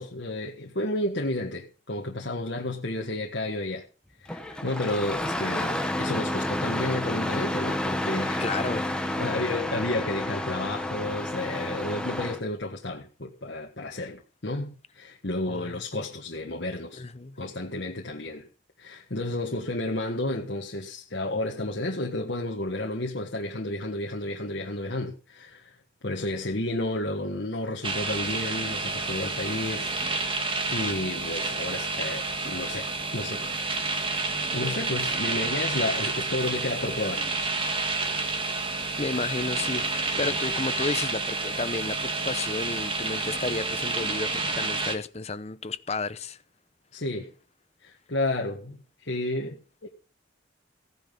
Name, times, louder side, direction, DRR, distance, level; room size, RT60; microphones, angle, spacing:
voice 1, 0.0-3.8 4.2-8.4 9.0-17.0 17.4-18.5 18.8-25.7 26.0-29.9 30.7-33.9 34.5-37.3 40.2-40.3 46.9-47.3 47.8-49.9, left 2 dB, 65° left, 1.5 m, -32 dB
Engine starting, 4.3-12.4, left 1 dB, 5° left, 1.3 m, -30 dB
voice 2, 8.4-9.0 15.5-15.8 16.9-17.4 39.0-46.4, left 3 dB, 35° left, 0.8 m, -32 dB
sound 1, 27.8-45.0, right 3 dB, 25° right, 1.6 m, -29 dB
15.5 x 9.8 x 5.4 m
head